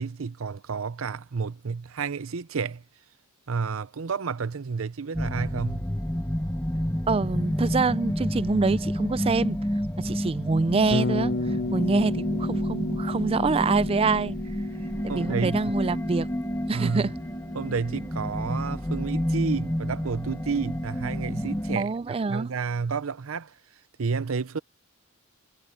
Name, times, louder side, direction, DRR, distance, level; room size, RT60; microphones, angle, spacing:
voice 1, 0.0-2.8 3.5-5.9 15.1-15.7 16.7-17.1 17.5-21.9 22.3-23.5 24.0-24.6, right 5 dB, 85° right, 0.7 m, -30 dB
sound 1, 5.1-21.8, equal, 10° left, 1.3 m, -30 dB
voice 2, 7.1-9.6 10.0-14.4 15.0-16.3 16.7-17.1 21.8-22.5, right 4 dB, 25° right, 0.4 m, -26 dB
Bass guitar, 10.9-19.0, left 2 dB, 55° left, 0.8 m, -34 dB
head